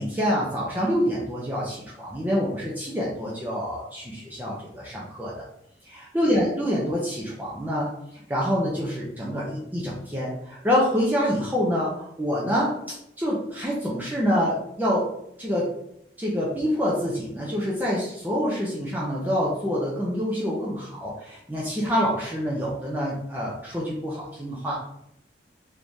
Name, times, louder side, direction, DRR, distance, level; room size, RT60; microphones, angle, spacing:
voice 1, 0.0-5.3 5.8-7.9 8.3-12.8 13.2-15.1 15.4-15.7 16.2-24.7, equal, 10° right, -6 dB, 0.6 m, -26 dB
3.6 x 3.1 x 2.6 m, 0.76 s
head